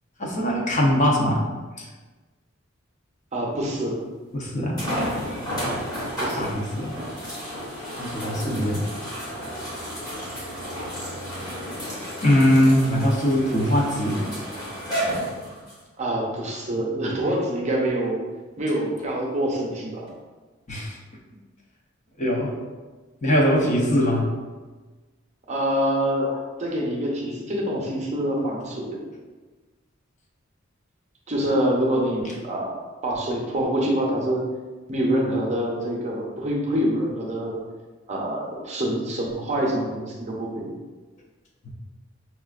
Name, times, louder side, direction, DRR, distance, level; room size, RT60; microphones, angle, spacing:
voice 1, 0.2-1.4 1.8-1.9 4.3-4.8 6.4-6.9 8.0-8.8 12.2-14.2 20.7-21.0 22.2-22.6 23.2-24.3, equal, 35° left, -2 dB, 0.6 m, -21 dB
voice 2, 3.3-3.9 6.2-6.5 8.4-8.7 16.0-18.2 18.6-20.1 25.5-29.0 31.3-34.4 34.9-37.6 38.1-40.7, right 1 dB, 35° right, -2 dB, 0.6 m, -26 dB
sound 1, 3.7-3.8 4.8-15.8 16.5-16.6 20.1-20.2, equal, 20° left, 1.1 m, -32 dB
5.5 x 2.4 x 2.4 m, 1.3 s
head